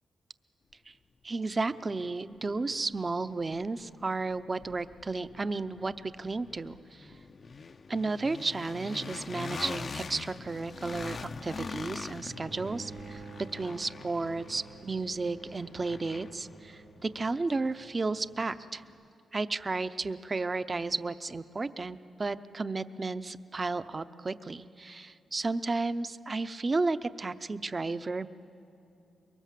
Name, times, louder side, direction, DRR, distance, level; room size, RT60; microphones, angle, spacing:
voice 1, 1.2-7.1 7.9-13.2 13.5-18.8 19.3-28.3, right 3 dB, 30° right, 13 dB, 0.7 m, -33 dB
sound 1, 2.0-2.1 2.5-18.5, left 4 dB, 45° left, 0.6 m, -44 dB
Bowed string instrument, 12.2-17.4, right 5 dB, 70° right, 0.6 m, -49 dB
24.5 x 22.5 x 7.5 m, 2.6 s
cardioid pair, 90°, 0 cm